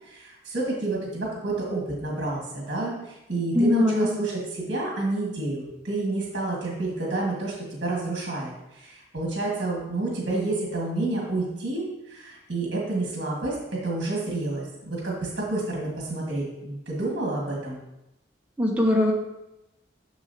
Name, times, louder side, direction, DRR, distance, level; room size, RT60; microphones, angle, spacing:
voice 1, 0.0-17.8, right 2 dB, 60° right, -3 dB, 1.6 m, -29 dB
voice 2, 3.5-4.1 18.6-19.1, left 1 dB, 10° right, -1 dB, 0.8 m, -21 dB
7.0 x 6.2 x 2.7 m, 0.93 s
head